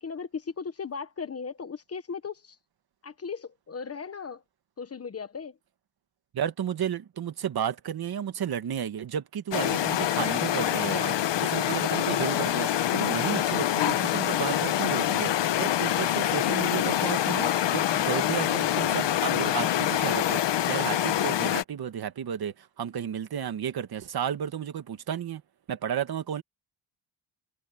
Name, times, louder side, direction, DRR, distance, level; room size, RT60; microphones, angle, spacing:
voice 1, 0.0-2.6 3.0-4.4 4.8-5.5, left 5 dB, 30° left, 1.1 m, -37 dB
voice 2, 6.3-25.4 25.7-26.4, right 9 dB, 55° right, 1.8 m, -33 dB
sound 1, 9.5-21.6, left 11 dB, 65° left, 1.2 m, -26 dB
cardioid pair, 140°, 45 cm